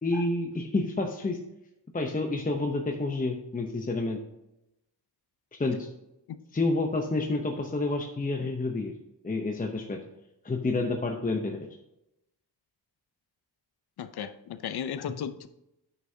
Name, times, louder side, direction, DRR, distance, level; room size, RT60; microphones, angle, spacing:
voice 1, 0.0-1.4 1.9-4.2 5.6-5.9 6.5-8.9 9.2-10.0 10.4-11.6, left 2 dB, 20° left, 3 dB, 0.7 m, -29 dB
voice 2, 14.0-15.5, left 8 dB, 65° left, 11 dB, 0.6 m, -35 dB
9.1 x 6.2 x 2.7 m, 0.88 s
wide cardioid pair, 100°, 42 cm